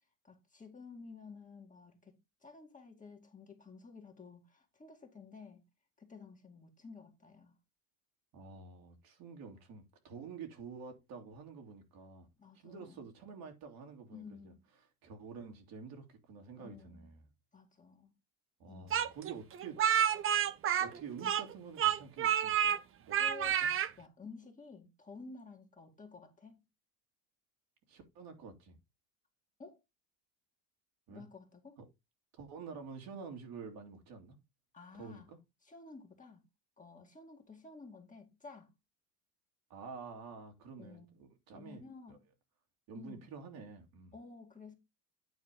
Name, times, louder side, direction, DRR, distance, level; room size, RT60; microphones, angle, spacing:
voice 1, 0.2-2.1 2.4-5.6 6.0-7.6 12.4-13.0 14.1-14.6 16.6-17.1 17.5-18.1 18.7-19.0 23.2-23.6 24.0-26.6 29.6-29.8 31.1-31.8 34.7-35.3 35.6-36.4 36.8-38.7 40.8-41.2 41.5-42.2 42.9-43.3 44.1-44.8, left 4 dB, 20° left, 2.2 m, -52 dB
voice 2, 8.3-12.3 12.6-14.5 15.0-17.3 18.6-20.3 20.8-22.8 23.0-23.7 27.9-28.8 31.1-31.2 31.8-31.9 32.4-34.4 34.9-35.4 39.7-41.8 42.1-42.2 42.9-44.2, right 5 dB, 55° right, 2.9 m, -49 dB
Speech, 18.9-21.5 21.8-22.8 23.1-23.9, right 9 dB, 30° right, 0.6 m, -29 dB
9.5 x 3.8 x 5.2 m
supercardioid pair, 100°, 42 cm